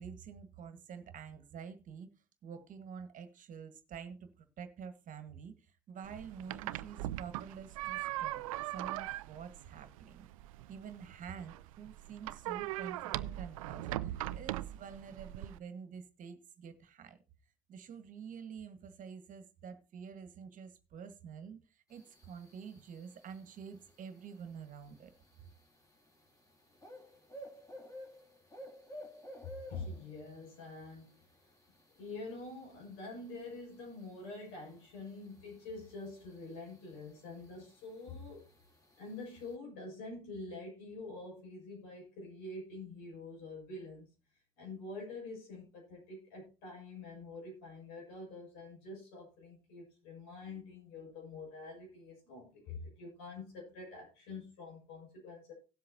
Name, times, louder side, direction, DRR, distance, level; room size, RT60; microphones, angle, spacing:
voice 1, 0.0-2.1 2.4-8.4 8.7-10.3 10.7-17.2 17.7-25.1, right 6 dB, 50° right, 1.6 m, -48 dB
sound 1, 6.0-15.6, right 15 dB, 85° right, 0.4 m, -40 dB
sound 2, 21.9-39.6, equal, 20° left, 3.3 m, -56 dB
voice 2, 29.4-31.2 31.9-38.4 39.0-44.1 44.6-55.5, left 3 dB, 75° left, 6.7 m, -46 dB
18.0 x 7.6 x 2.8 m
hypercardioid pair, 70°, 17 cm